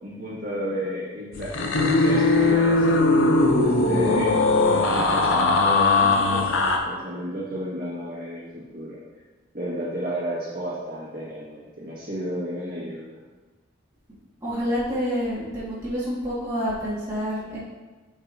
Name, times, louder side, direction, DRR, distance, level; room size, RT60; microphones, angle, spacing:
voice 1, 0.0-3.0 3.6-4.3 4.9-9.0 9.5-13.2, equal, 45° right, -7 dB, 1.9 m, -32 dB
sound 1, 1.3-6.8, left 2 dB, 70° left, 0.7 m, -20 dB
voice 2, 14.4-17.6, equal, 15° right, -10 dB, 1.9 m, -28 dB
8.2 x 5.3 x 2.8 m, 1.3 s
head